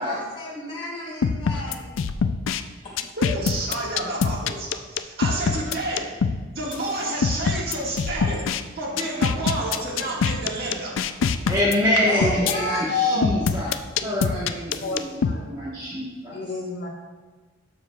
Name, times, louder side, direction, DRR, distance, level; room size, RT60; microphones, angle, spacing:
voice 1, 0.0-1.8 2.8-2.9 10.1-10.2 12.1-12.9, left 1 dB, 25° left, -5 dB, 2.4 m, -32 dB
sound 1, 1.2-2.6 3.0-6.4 6.7-6.8 7.2-8.6 9.0-12.5 13.2-15.3, left 6 dB, 85° left, 0.4 m, -24 dB
voice 2, 3.2-6.2 6.5-8.4 8.8-10.9, right 2 dB, 55° right, -3 dB, 1.8 m, -29 dB
voice 3, 11.5-13.7 14.0-16.4, left 1 dB, 20° right, -8 dB, 1.1 m, -25 dB
voice 4, 12.9-13.3 14.0-14.2 14.8-15.4 16.3-16.9, left 4 dB, 55° left, -1 dB, 1.3 m, -28 dB
12.0 x 6.5 x 2.3 m, 1.3 s
head